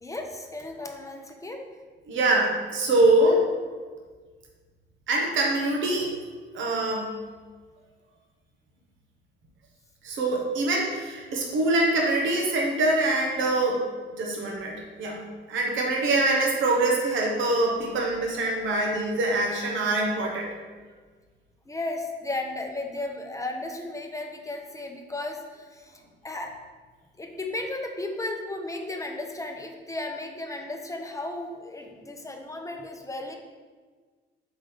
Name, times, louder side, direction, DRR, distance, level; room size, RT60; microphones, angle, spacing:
voice 1, 0.0-1.6 21.7-26.5 27.2-33.4, left 2 dB, 15° left, 3 dB, 0.8 m, -35 dB
voice 2, 2.1-3.4 5.1-6.1 6.5-7.1 10.0-13.8 14.1-20.5, right 2 dB, 75° right, 0 dB, 1.1 m, -24 dB
5.0 x 3.7 x 5.2 m, 1.4 s
cardioid pair, 90°, 20 cm